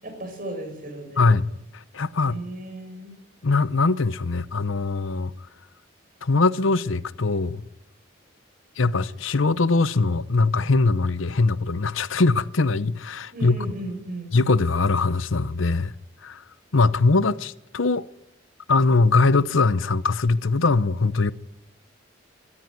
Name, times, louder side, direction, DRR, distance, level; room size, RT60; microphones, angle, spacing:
voice 1, 0.0-1.4 2.2-3.1 13.3-14.4, right 1 dB, 45° right, 7.6 m, -35 dB
voice 2, 1.7-2.4 3.4-5.3 6.2-7.6 8.8-13.7 14.3-15.9 16.2-16.4 16.7-18.1 18.7-21.3, left 3 dB, 85° left, 0.8 m, -21 dB
24.5 x 14.0 x 9.3 m
head